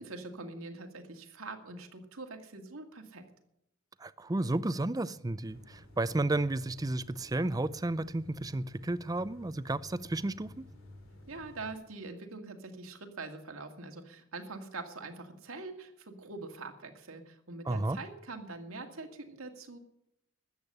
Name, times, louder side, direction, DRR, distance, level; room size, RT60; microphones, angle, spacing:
voice 1, 0.0-3.2 11.3-19.8, right 3 dB, 90° right, 2.1 m, -44 dB
voice 2, 4.0-10.5 17.7-18.0, right 2 dB, 15° right, 0.5 m, -32 dB
sound 1, 5.5-11.7, left 1 dB, 75° left, 3.3 m, -54 dB
13.5 x 8.3 x 9.9 m
head